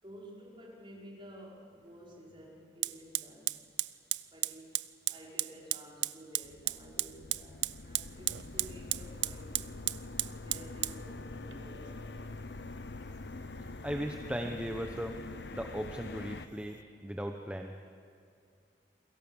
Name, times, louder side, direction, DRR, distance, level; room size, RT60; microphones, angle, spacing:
voice 1, 0.0-3.6 4.3-4.7 5.1-9.6 10.4-12.5, equal, 30° right, -2 dB, 5.0 m, -52 dB
Fire, 1.8-1.9 2.8-16.8, right 15 dB, 85° right, 0.6 m, -38 dB
sound 1, 6.4-16.5, left 3 dB, 70° left, 0.9 m, -45 dB
voice 2, 13.8-15.2 15.5-17.7, equal, 5° right, 4 dB, 1.0 m, -37 dB
29.0 x 22.5 x 7.2 m, 2.4 s
head